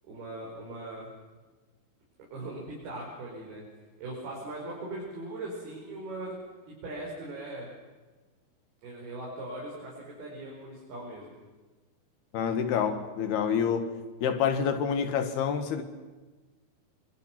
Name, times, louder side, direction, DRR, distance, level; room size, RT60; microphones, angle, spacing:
voice 1, 0.0-1.1 2.3-3.6 4.0-6.4 6.8-7.7 8.8-11.4, right 2 dB, 85° right, -4 dB, 7.2 m, -39 dB
voice 2, 12.3-13.9 14.2-15.8, left 7 dB, 90° left, 8 dB, 3.9 m, -27 dB
28.0 x 25.0 x 6.1 m, 1.3 s
omnidirectional pair, 4.4 m